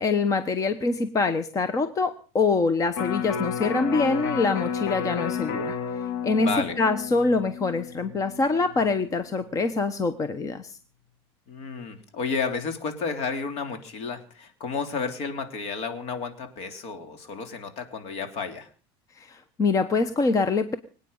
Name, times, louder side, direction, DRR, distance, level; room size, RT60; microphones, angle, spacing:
voice 1, 0.0-5.8 6.2-6.5 6.8-10.8 19.2-20.8, left 3 dB, 25° left, 12 dB, 1.0 m, -25 dB
Electric guitar, 2.9-9.2 9.6-9.7, left 6 dB, 80° left, 2.7 m, -31 dB
voice 2, 6.3-6.8 11.5-18.7, left 5 dB, 55° left, 7 dB, 3.2 m, -32 dB
24.5 x 9.1 x 5.5 m, 0.41 s
supercardioid pair, 125°, 13 cm